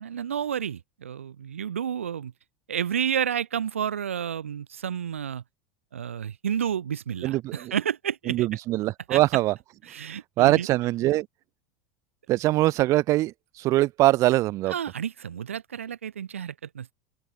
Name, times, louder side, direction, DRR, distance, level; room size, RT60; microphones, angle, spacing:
voice 1, 0.0-2.3 2.7-5.4 5.9-8.5 9.1-9.2 9.9-10.7 14.7-16.9, right 8 dB, 85° right, 0.5 m, -30 dB
voice 2, 7.2-7.7 8.3-9.5 10.4-11.3 12.3-14.7, right 17 dB, 45° right, 1.2 m, -22 dB
open air
hypercardioid pair, 80°, 7 cm